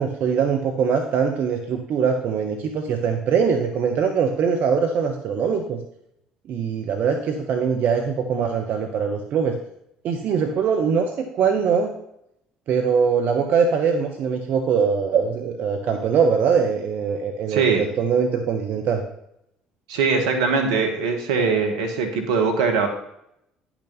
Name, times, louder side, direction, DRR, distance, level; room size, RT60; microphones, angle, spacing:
voice 1, 0.0-5.8 6.5-9.6 10.0-11.9 12.7-19.0, right 6 dB, 55° right, 5 dB, 0.9 m, -22 dB
voice 2, 17.5-17.8 19.9-22.9, right 5 dB, 75° right, 5 dB, 1.5 m, -21 dB
10.0 x 6.0 x 4.0 m, 0.78 s
hypercardioid pair, 60°, 3 cm